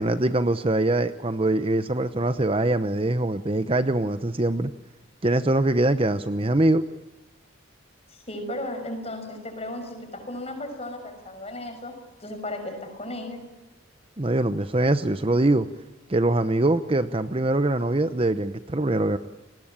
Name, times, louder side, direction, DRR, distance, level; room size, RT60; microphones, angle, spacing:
voice 1, 0.0-4.7 5.2-6.8 14.2-15.7 16.1-19.2, right 2 dB, 25° right, 11 dB, 0.8 m, -23 dB
voice 2, 8.1-11.9 12.2-13.4, left 1 dB, 30° left, 6 dB, 6.2 m, -35 dB
30.0 x 20.0 x 8.9 m, 1.0 s
head